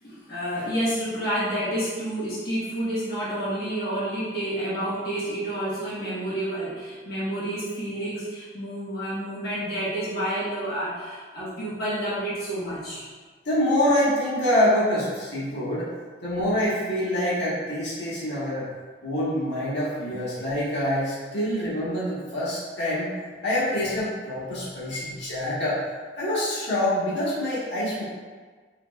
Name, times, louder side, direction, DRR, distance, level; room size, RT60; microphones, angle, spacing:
voice 1, 0.0-13.0 24.5-25.5, right 1 dB, 60° left, -10 dB, 1.1 m, -30 dB
voice 2, 13.4-15.9 16.2-18.6 19.0-23.1 23.4-25.8 26.2-28.0, left 1 dB, 85° left, -8 dB, 1.3 m, -25 dB
4.9 x 3.0 x 2.3 m, 1.5 s
head